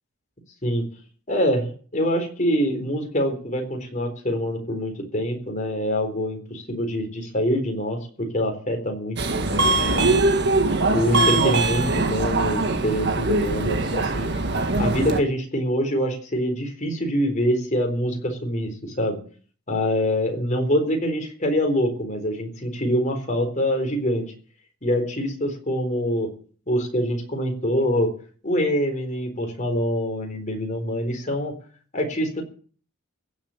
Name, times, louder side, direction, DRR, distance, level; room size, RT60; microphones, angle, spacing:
voice 1, 1.3-10.0 10.9-14.3 14.8-19.2 19.7-24.2 24.8-26.3 26.7-28.1 28.4-31.5 31.9-32.4, equal, 35° left, 3 dB, 4.1 m, -25 dB
Subway metro underground, 9.2-15.2, right 2 dB, 50° right, 1.7 m, -22 dB
16.0 x 7.5 x 8.9 m, 0.43 s
head